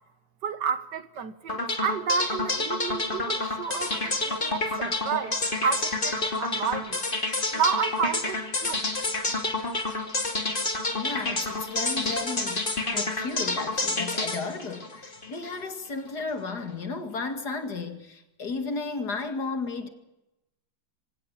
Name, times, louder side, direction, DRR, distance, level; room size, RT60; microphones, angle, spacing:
voice 1, 0.4-7.0 7.5-8.8, right 6 dB, 70° right, 1.9 m, -30 dB
sound 1, 1.5-15.6, left 2 dB, 30° left, 2.8 m, -29 dB
voice 2, 10.9-19.9, left 4 dB, 60° left, 2.7 m, -34 dB
25.0 x 17.5 x 8.7 m
omnidirectional pair, 2.0 m